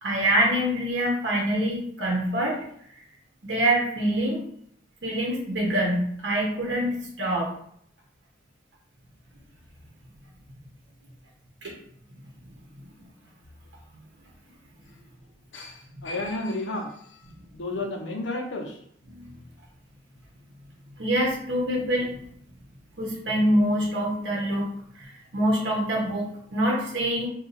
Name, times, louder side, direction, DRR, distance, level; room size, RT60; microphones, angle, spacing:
voice 1, 0.0-2.6 3.4-4.4 5.0-7.5 11.6-11.7 19.0-19.3 21.0-22.1 23.0-24.7 24.9-27.3, right 1 dB, 70° right, -2 dB, 0.9 m, -25 dB
voice 2, 15.5-17.2 17.5-18.8, left 2 dB, 80° left, 3 dB, 0.6 m, -32 dB
2.7 x 2.3 x 3.9 m, 0.66 s
head